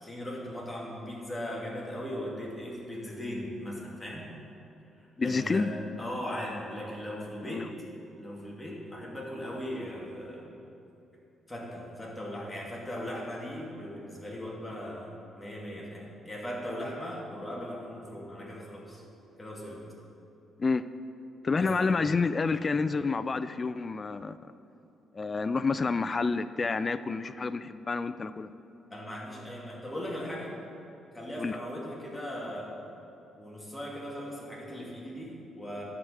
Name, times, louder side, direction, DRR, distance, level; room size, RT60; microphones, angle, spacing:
voice 1, 0.0-4.3 5.2-5.7 6.0-7.7 8.2-10.5 11.5-19.0 19.4-19.8 21.5-21.9 22.4-22.6 28.9-30.6 31.1-32.7 33.4-35.8, equal, 10° left, -4 dB, 2.4 m, -38 dB
voice 2, 5.2-5.7 7.5-7.7 20.6-20.8 21.4-24.4 25.1-28.5 31.4-31.5, left 4 dB, 35° left, 13 dB, 0.3 m, -29 dB
11.0 x 4.8 x 7.9 m, 2.9 s
cardioid pair, 90°, 0 cm